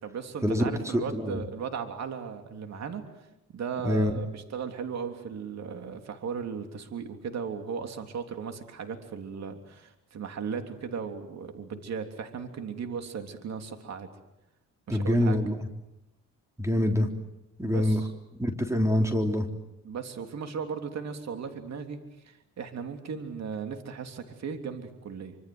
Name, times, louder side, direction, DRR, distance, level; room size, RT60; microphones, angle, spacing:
voice 1, 0.0-3.0 3.5-14.1 14.9-15.4 17.6-18.1 19.8-22.0 22.2-25.4, right 6 dB, 60° right, 6 dB, 3.4 m, -36 dB
voice 2, 0.9-1.4 3.8-4.2 14.9-15.6 16.6-17.1 17.6-18.0 18.4-19.5, left 1 dB, 10° right, 4 dB, 3.6 m, -25 dB
26.0 x 25.5 x 7.9 m, 0.89 s
cardioid pair, 90°, 30 cm